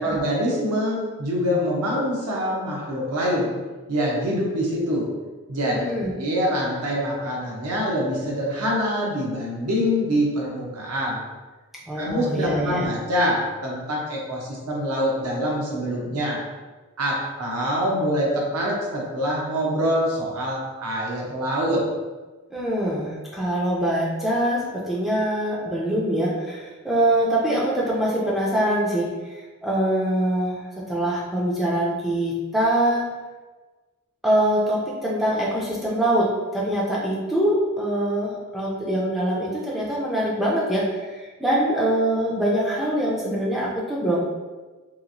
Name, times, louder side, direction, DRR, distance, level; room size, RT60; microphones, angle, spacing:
voice 1, 0.0-3.5 3.9-5.1 5.5-5.8 6.2-11.2 11.9-16.4 17.0-21.8, equal, 85° right, -3 dB, 0.7 m, -25 dB
voice 2, 5.7-6.1 11.9-12.9 22.5-33.1 34.2-44.2, right 1 dB, ahead, -6 dB, 0.4 m, -24 dB
2.9 x 2.4 x 2.6 m, 1.3 s
head